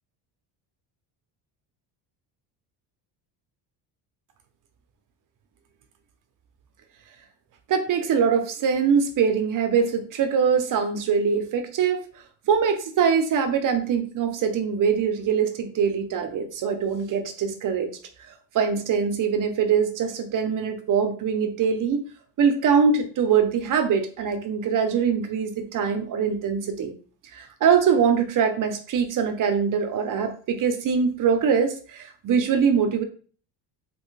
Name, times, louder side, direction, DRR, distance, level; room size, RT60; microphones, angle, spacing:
voice 1, 7.7-12.0 12.5-17.9 18.5-22.1 22.4-26.9 27.3-33.0, right 6 dB, 45° right, 7 dB, 0.6 m, -23 dB
3.2 x 2.9 x 3.1 m, 0.42 s
cardioid pair, 130°, 47 cm